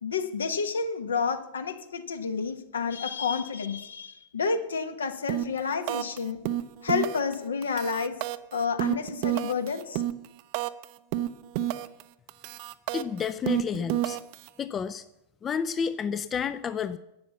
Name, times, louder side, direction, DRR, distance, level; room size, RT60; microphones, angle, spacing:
voice 1, 0.0-6.4 6.8-8.2 8.5-10.0, left 5 dB, 70° left, 9 dB, 1.2 m, -30 dB
sound 1, 5.3-5.6 5.9-6.2 6.5-7.3 7.6-10.8 11.1-12.0 12.3-14.5, right 14 dB, 45° right, 0.6 m, -29 dB
voice 2, 12.9-14.2 14.6-15.0 15.4-17.0, left 7 dB, 25° left, 12 dB, 0.5 m, -30 dB
12.0 x 8.3 x 7.1 m, 0.88 s
figure-of-eight pair, 90°, 0 cm